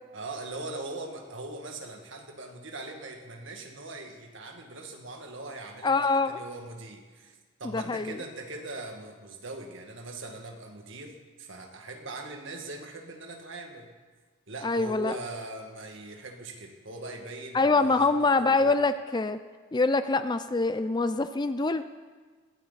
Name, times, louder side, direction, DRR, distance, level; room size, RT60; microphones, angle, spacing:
voice 1, 0.1-13.9 14.5-18.8, right 2 dB, 60° right, 3 dB, 2.0 m, -41 dB
voice 2, 5.8-6.4 7.6-8.2 14.6-15.2 17.5-19.4 19.7-21.8, left 3 dB, 20° left, 11 dB, 0.4 m, -25 dB
21.0 x 16.5 x 4.0 m, 1.4 s
head